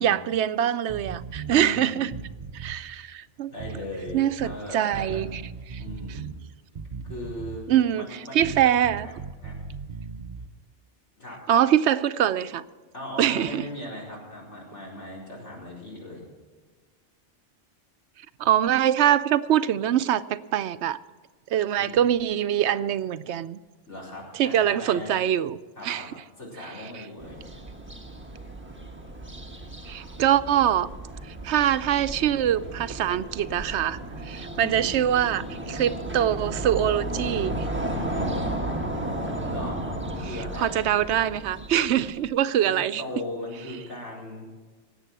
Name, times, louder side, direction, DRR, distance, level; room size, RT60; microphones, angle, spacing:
voice 1, 0.0-2.1 2.5-3.5 4.1-5.4 5.7-5.8 6.1-6.2 7.7-8.1 8.3-9.1 11.5-12.6 13.2-13.6 18.4-21.0 21.5-23.6 24.3-25.6 25.8-26.0 29.9-30.9 31.3-37.7 40.6-43.0, right 10 dB, 75° right, 14 dB, 0.9 m, -24 dB
sound 1, 0.9-1.6 2.0-2.8 3.6-4.6 4.9-6.4 6.7-7.7 8.4-10.5, right 5 dB, 40° right, 0.8 m, -38 dB
voice 2, 1.5-2.0 3.5-5.2 5.8-6.2 7.1-7.6 7.9-8.5 9.0-9.1 9.4-9.5 11.2-11.4 12.9-16.2 21.8-22.0 23.9-25.1 25.8-26.1 26.4-27.4 34.6-34.9 38.1-38.3 39.4-39.8 40.2-40.9 42.6-44.4, left 1 dB, 85° left, -4 dB, 5.0 m, -38 dB
sound 2, 27.2-42.3, right 1 dB, 10° right, 1.4 m, -34 dB
18.5 x 8.1 x 6.1 m, 1.4 s
omnidirectional pair, 1.2 m